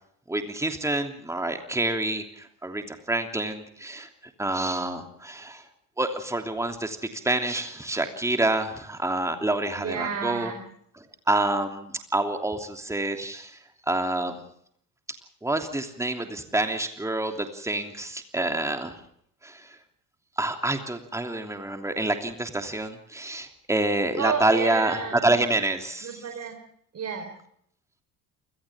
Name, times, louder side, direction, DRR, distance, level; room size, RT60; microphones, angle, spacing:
voice 1, 0.3-4.1 4.4-5.6 6.0-10.5 11.0-13.6 13.9-14.4 15.1-19.0 19.4-19.7 20.4-26.2, right 2 dB, 5° right, 5 dB, 3.0 m, -27 dB
voice 2, 9.8-10.6 24.2-25.4 26.0-26.6 26.9-27.3, right 6 dB, 30° right, 5 dB, 4.2 m, -31 dB
30.0 x 27.0 x 3.6 m, 0.68 s
figure-of-eight pair, 60°, 48 cm